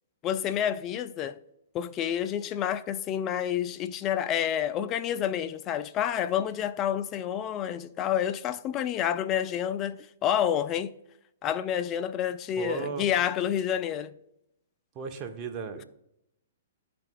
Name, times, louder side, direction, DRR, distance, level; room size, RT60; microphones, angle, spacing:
voice 1, 0.2-1.4 1.7-10.9 11.4-14.1, left 10 dB, 25° left, 0.4 m, -29 dB
voice 2, 12.6-13.1 15.0-15.8, right 6 dB, 30° right, 0.9 m, -35 dB
12.0 x 4.2 x 2.3 m
figure-of-eight pair, 115°, 0 cm